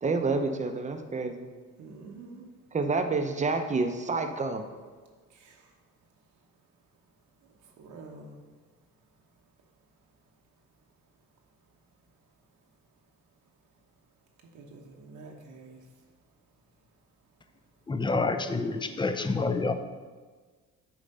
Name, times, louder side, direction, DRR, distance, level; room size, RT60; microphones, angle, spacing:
voice 1, 0.0-1.5 2.7-4.6, right 3 dB, 25° right, 6 dB, 0.7 m, -28 dB
voice 2, 1.8-2.4 7.8-8.4 14.5-15.8, right 3 dB, 75° right, 1 dB, 1.0 m, -46 dB
voice 3, 17.9-19.7, left 3 dB, 15° left, 8 dB, 0.5 m, -28 dB
8.5 x 3.2 x 5.3 m, 1.4 s
cardioid pair, 90°, 30 cm